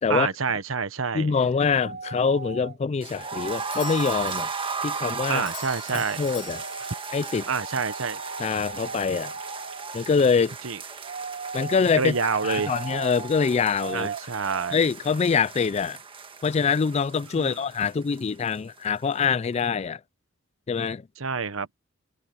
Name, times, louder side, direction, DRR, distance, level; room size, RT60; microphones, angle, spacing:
voice 1, 0.1-1.3 5.3-6.2 7.5-8.2 10.6-10.8 12.0-12.7 13.9-14.8 17.4-17.6 21.2-21.7, right 5 dB, 90° right, 1.1 m, -27 dB
voice 2, 1.1-4.5 4.8-5.5 5.9-6.6 7.1-7.5 8.4-9.3 9.9-10.5 11.5-12.2 12.4-14.1 14.7-16.0 16.4-20.0 20.7-21.0, left 5 dB, 30° left, 0.3 m, -24 dB
sound 1, 1.6-2.8 3.2-5.3 6.5-7.0 7.4-9.9 11.0-13.3 13.8-14.8, right 5 dB, 50° right, 0.7 m, -38 dB
sound 2, 3.0-18.9 19.1-19.2 19.5-19.6, right 5 dB, 25° right, 1.4 m, -36 dB
Doorbell, 3.5-7.9, left 11 dB, 55° left, 2.0 m, -45 dB
head